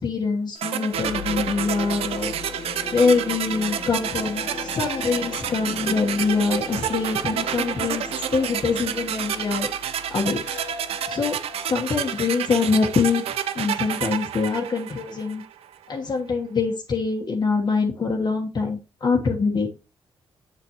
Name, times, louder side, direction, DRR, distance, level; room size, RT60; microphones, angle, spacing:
voice 1, 0.0-2.3 2.9-9.7 10.1-10.4 11.1-11.4 11.7-13.2 13.5-15.4 15.9-19.7, left 4 dB, 45° left, -1 dB, 1.3 m, -24 dB
sound 1, 0.6-15.5, right 10 dB, 85° right, 0.6 m, -29 dB
sound 2, 0.9-13.0, left 4 dB, 80° left, 1.5 m, -37 dB
7.2 x 7.0 x 3.0 m, 0.29 s
cardioid pair, 90°, 10 cm